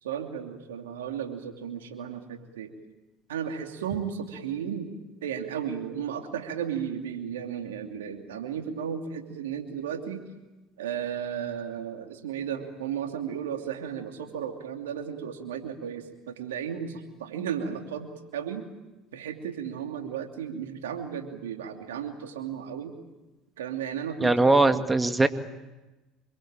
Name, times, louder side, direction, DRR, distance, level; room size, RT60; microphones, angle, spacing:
voice 1, 0.0-2.7 3.3-4.9 5.2-10.2 10.8-18.6 19.1-22.9 23.6-24.9, right 8 dB, 90° right, 4 dB, 2.9 m, -34 dB
voice 2, 24.2-25.3, right 2 dB, 15° right, 8 dB, 2.1 m, -20 dB
26.5 x 23.0 x 9.0 m, 1.1 s
hypercardioid pair, 75°, 0 cm